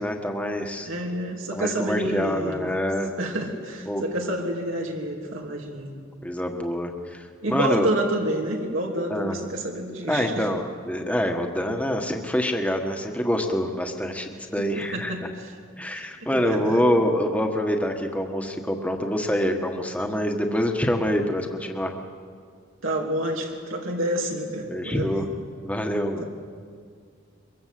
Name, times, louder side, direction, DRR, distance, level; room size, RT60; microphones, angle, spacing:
voice 1, 0.0-0.9 1.5-3.1 3.9-4.0 6.2-7.9 9.1-9.4 10.1-15.3 15.8-21.9 24.7-25.2 25.6-26.2, equal, 5° left, 3 dB, 1.6 m, -26 dB
voice 2, 0.8-2.7 3.2-5.9 7.4-10.5 14.9-15.5 16.0-16.1 16.3-16.8 22.8-25.3, right 1 dB, 90° right, 0 dB, 3.1 m, -28 dB
23.0 x 23.0 x 7.8 m, 2.1 s
head